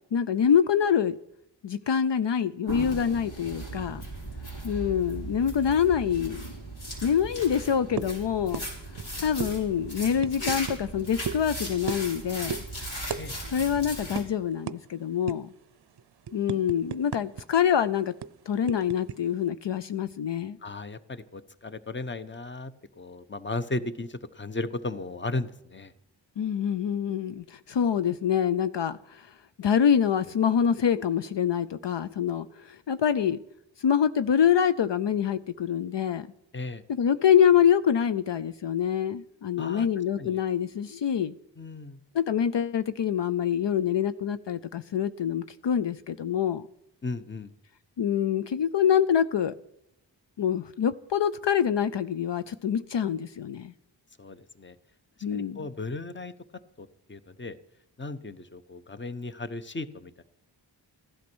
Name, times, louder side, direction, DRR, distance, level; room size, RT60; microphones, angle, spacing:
voice 1, 0.1-1.2 1.6-4.0 4.6-6.4 7.0-8.7 9.2-12.6 13.5-15.5 16.3-18.1 18.5-20.6 26.4-29.3 29.6-33.4 33.8-36.3 36.9-41.3 42.1-46.7 48.0-49.5 50.4-53.7 55.2-55.6, left 8 dB, 70° left, 13 dB, 0.6 m, -25 dB
sound 1, 2.7-14.2, right 1 dB, 85° left, 5.6 m, -37 dB
sound 2, 8.0-8.2 8.5-8.7 8.9-9.1 9.4-9.5 10.2-10.8 11.3-11.5 11.9-12.2 12.5-12.7 13.1-13.2 13.5-13.7 14.2-14.3 14.7-14.8 15.3-15.5 16.0-17.4 17.7-17.8 18.2-19.2, right 7 dB, 60° right, 0.6 m, -34 dB
voice 2, 20.6-25.9 36.5-36.8 39.6-39.9 40.2-40.4 41.6-42.0 47.0-47.5 54.2-54.7 55.3-56.3 56.8-57.6 58.0-60.2, left 2 dB, 25° left, 12 dB, 0.9 m, -36 dB
15.5 x 11.5 x 6.2 m, 0.78 s
wide cardioid pair, 80°, 46 cm